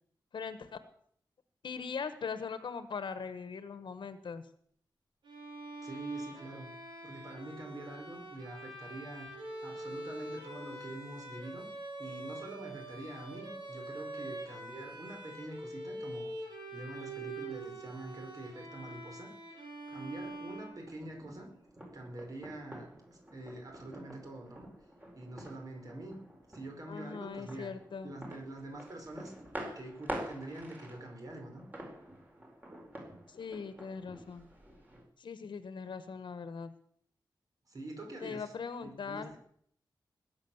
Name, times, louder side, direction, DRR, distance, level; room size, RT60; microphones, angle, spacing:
voice 1, 0.3-0.8 1.6-4.4 26.9-28.1 33.3-34.5 35.2-36.7 38.2-39.3, left 5 dB, 80° left, 11 dB, 1.3 m, -40 dB
Bowed string instrument, 5.2-21.2, right 2 dB, 85° right, 5.3 m, -45 dB
voice 2, 5.8-6.7 7.0-9.3 9.6-11.7 12.0-19.3 19.9-21.5 21.9-24.7 25.1-26.2 26.5-27.7 28.0-29.3 29.7-31.7 37.7-38.5 38.8-39.4, right 1 dB, 50° right, 2 dB, 4.9 m, -45 dB
sound 1, 20.2-35.0, right 1 dB, 20° right, 4.5 m, -48 dB
20.0 x 8.9 x 7.2 m, 0.64 s
wide cardioid pair, 150°, 8 cm